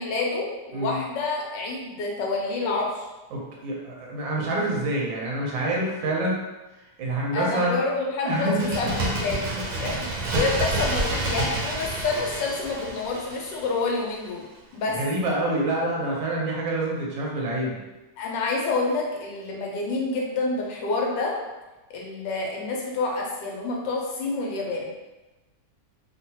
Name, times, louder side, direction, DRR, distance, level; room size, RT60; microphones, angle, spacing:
voice 1, 0.0-3.1 7.3-9.5 9.8-10.1 10.3-14.4 14.7-15.0 18.2-21.3 21.9-24.9, left 3 dB, 80° left, -1 dB, 1.3 m, -28 dB
voice 2, 3.3-6.4 7.0-7.8 8.2-8.7 9.0-9.1 14.9-17.8, right 1 dB, 85° right, -3 dB, 1.5 m, -26 dB
Bird, 8.4-14.0 14.3-14.4, right 2 dB, 70° right, 1.0 m, -29 dB
3.8 x 2.1 x 2.7 m, 1.1 s
omnidirectional pair, 1.9 m